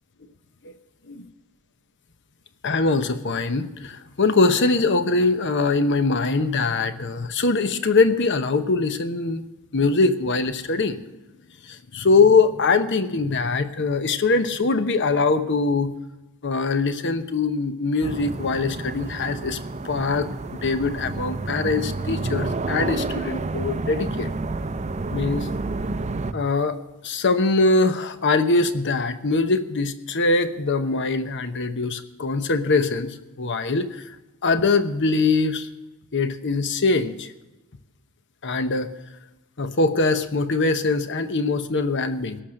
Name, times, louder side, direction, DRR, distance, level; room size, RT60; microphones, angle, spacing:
voice 1, 2.6-9.4 9.7-11.0 11.7-15.9 16.4-19.6 19.8-24.3 25.1-25.5 26.3-26.8 27.0-34.0 34.4-35.7 36.1-37.3 38.4-38.9 39.6-42.4, left 3 dB, 55° left, 11 dB, 1.0 m, -22 dB
sound 1, 18.0-26.3, right 3 dB, 30° right, 0.6 m, -29 dB
17.5 x 6.6 x 7.6 m, 1.0 s
head